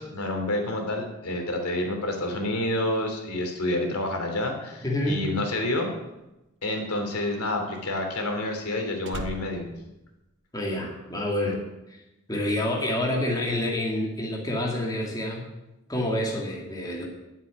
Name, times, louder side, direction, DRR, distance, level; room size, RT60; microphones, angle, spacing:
voice 1, 0.0-5.9 6.6-9.7, left 1 dB, 85° left, 3 dB, 3.1 m, -28 dB
voice 2, 4.8-5.3 10.5-11.6 11.9-12.0 12.3-15.5 15.9-17.1, left 1 dB, 15° left, -1 dB, 2.4 m, -28 dB
Slam, 6.1-10.8 11.1-11.5, right 2 dB, 55° right, 1.2 m, -42 dB
11.0 x 8.1 x 9.9 m, 0.98 s
head